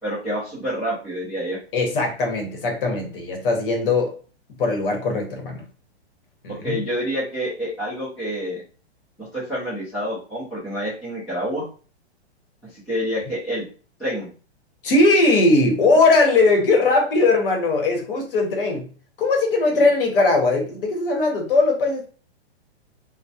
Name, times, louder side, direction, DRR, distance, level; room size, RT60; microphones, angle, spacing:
voice 1, 0.0-1.6 6.6-8.6 9.2-11.7 12.7-13.7 14.0-14.3 19.7-19.8, equal, ahead, -12 dB, 0.4 m, -28 dB
voice 2, 1.7-4.1 4.6-5.7 6.4-6.8 14.8-18.9 19.2-22.1, left 3 dB, 55° left, 2 dB, 0.9 m, -19 dB
2.2 x 2.1 x 2.7 m, 0.38 s
hypercardioid pair, 150°, 34 cm